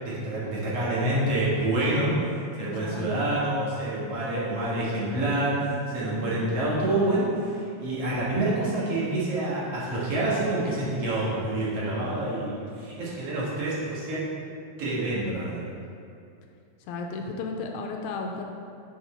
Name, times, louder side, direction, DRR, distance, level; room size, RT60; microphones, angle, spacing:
voice 1, 0.0-2.1 2.6-14.2 14.8-15.6, right 1 dB, 55° right, -7 dB, 2.5 m, -27 dB
voice 2, 2.6-3.3 6.3-6.6 16.9-18.4, left 4 dB, 80° left, 2 dB, 1.9 m, -34 dB
7.4 x 6.4 x 4.3 m, 2.5 s
omnidirectional pair, 3.4 m